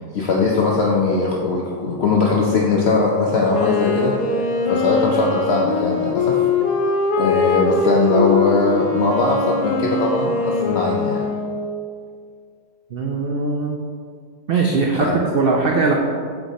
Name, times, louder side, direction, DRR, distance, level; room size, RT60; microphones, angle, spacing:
voice 1, 0.1-6.5 7.2-11.2 15.0-15.2, left 3 dB, 60° left, -2 dB, 0.7 m, -20 dB
Wind instrument woodwind instrument, 3.5-11.8, left 4 dB, 85° left, 1.2 m, -22 dB
voice 2, 12.9-13.8 14.5-15.9, right 3 dB, 85° right, 0 dB, 0.5 m, -20 dB
7.4 x 3.5 x 4.1 m, 2.1 s
omnidirectional pair, 1.6 m